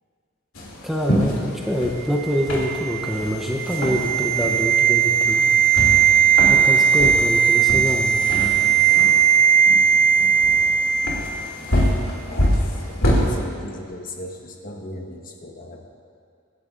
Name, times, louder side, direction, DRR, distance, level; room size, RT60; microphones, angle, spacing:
sound 1, 0.5-13.3, equal, 70° left, 2.6 m, -27 dB
voice 1, 0.8-5.4 6.5-8.2, equal, ahead, -1 dB, 0.7 m, -25 dB
sound 2, 2.2-11.4 11.7-11.9, right 7 dB, 60° right, 2.3 m, -18 dB
voice 2, 12.2-15.8, left 1 dB, 40° left, 1 dB, 1.2 m, -38 dB
23.5 x 10.5 x 2.5 m, 2.3 s
head